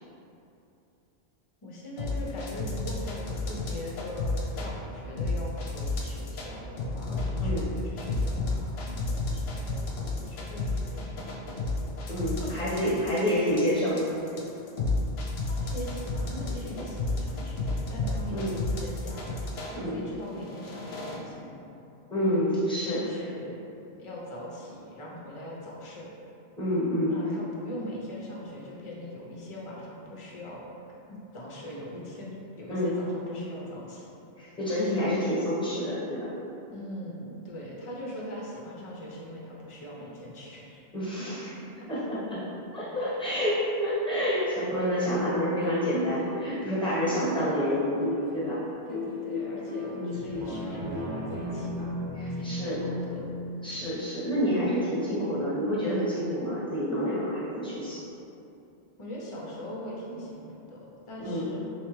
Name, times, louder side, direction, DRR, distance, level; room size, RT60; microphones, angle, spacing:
voice 1, 1.6-11.6 15.5-21.6 22.9-23.6 24.0-26.1 27.0-30.7 31.1-34.1 36.7-40.9 47.2-47.6 48.9-52.0 52.3-53.3 59.0-61.6, left 1 dB, 35° left, -4 dB, 0.5 m, -41 dB
sound 1, 2.0-4.7 5.2-6.5 6.8-19.8 20.3-21.2, left 2 dB, 70° left, 0.8 m, -31 dB
voice 2, 12.1-14.0 18.3-18.6 19.8-20.0 22.1-23.2 26.6-27.1 32.7-33.0 34.4-36.3 40.9-41.5 41.9-42.4 42.7-48.0 48.3-48.6 49.9-50.2 52.1-52.8 53.6-58.0 61.2-61.5, equal, 5° left, -9 dB, 1.0 m, -28 dB
sound 2, 45.1-51.8, left 4 dB, 30° right, 1.0 m, -39 dB
sound 3, 50.1-55.2 55.6-55.7, equal, 85° right, 1.0 m, -36 dB
3.4 x 3.2 x 3.1 m, 2.8 s
omnidirectional pair, 1.1 m